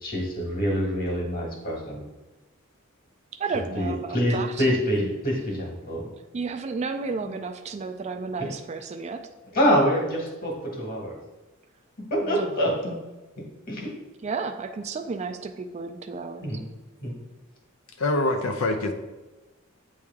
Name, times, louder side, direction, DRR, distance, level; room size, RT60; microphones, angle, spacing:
voice 1, 0.0-2.0 3.7-6.0 9.5-11.1 12.1-12.9 13.7-13.9 16.4-16.6 17.0-17.2, equal, 45° left, -1 dB, 1.7 m, -25 dB
voice 2, 3.4-4.6 6.3-9.2 12.2-12.5 14.2-16.5, right 4 dB, 35° right, 7 dB, 0.3 m, -32 dB
voice 3, 18.0-18.9, left 2 dB, 80° left, 4 dB, 0.6 m, -25 dB
8.4 x 3.2 x 3.5 m, 1.1 s
head